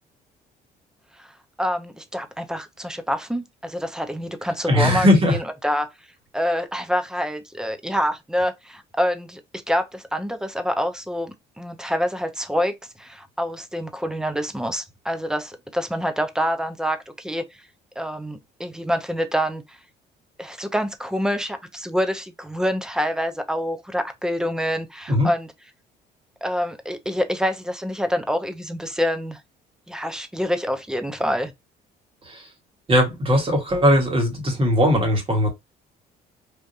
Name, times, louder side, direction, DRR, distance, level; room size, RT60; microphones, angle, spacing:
voice 1, 1.6-5.9 6.3-9.4 9.7-17.4 18.0-19.8 20.4-25.5 26.4-29.4 29.9-31.5, equal, 5° right, 0.5 m, -26 dB
voice 2, 4.7-5.4 25.1-25.3 32.3-32.4 32.9-35.5, left 1 dB, 30° right, 1.5 m, -19 dB
3.5 x 2.5 x 2.7 m
cardioid pair, 110°, 17 cm